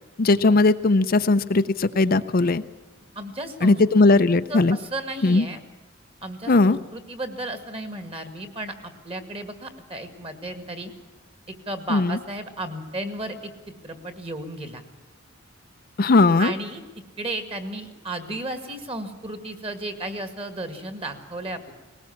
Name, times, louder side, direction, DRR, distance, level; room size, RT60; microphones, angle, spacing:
voice 1, 0.2-2.6 3.6-4.8 5.2-5.4 6.5-6.8 11.9-12.2 16.0-16.5, left 3 dB, 45° left, 10 dB, 0.5 m, -18 dB
voice 2, 3.2-3.8 4.1-4.2 4.5-5.6 6.2-10.9 11.5-14.8 16.4-16.8 17.2-21.7, right 1 dB, 30° right, 8 dB, 2.0 m, -34 dB
19.5 x 18.5 x 7.2 m, 1.3 s
head